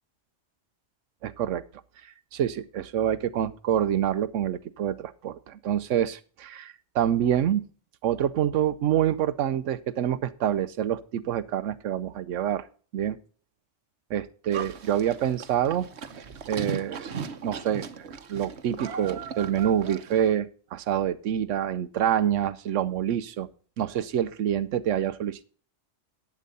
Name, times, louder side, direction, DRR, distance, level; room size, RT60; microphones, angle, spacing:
voice 1, 1.2-1.6 2.3-7.7 8.0-12.7 12.9-13.2 14.1-15.9 16.5-17.1 17.4-23.5 23.8-25.4, right 10 dB, 90° right, 13 dB, 1.0 m, -27 dB
Livestock farm animals working animals, 14.5-20.3, right 6 dB, 65° right, 1.2 m, -37 dB
12.0 x 8.6 x 4.0 m, 0.41 s
omnidirectional pair, 1.2 m